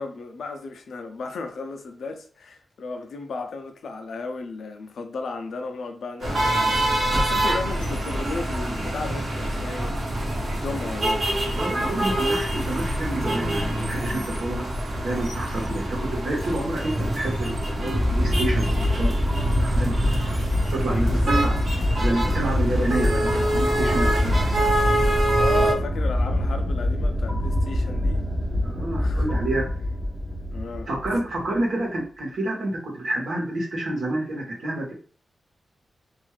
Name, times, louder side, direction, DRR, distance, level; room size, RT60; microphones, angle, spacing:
voice 1, 0.0-10.0 10.5-11.3 12.0-12.1 20.9-21.3 21.6-21.7 25.4-28.2 29.0-29.4 30.5-30.9, left 3 dB, 85° left, 0.5 m, -34 dB
sound 1, 6.2-25.7, right 1 dB, 50° right, 1.0 m, -25 dB
voice 2, 11.5-14.6 14.9-20.2 20.7-21.5 22.0-24.5 28.6-29.7 30.9-34.9, right 1 dB, 90° right, 1.2 m, -29 dB
sound 2, 16.4-18.8 19.1-20.8 21.1-24.3, left 1 dB, 10° left, 0.5 m, -36 dB
sound 3, 17.4-31.6, left 1 dB, 30° right, 0.7 m, -25 dB
2.6 x 2.4 x 3.1 m
wide cardioid pair, 125°, 0 cm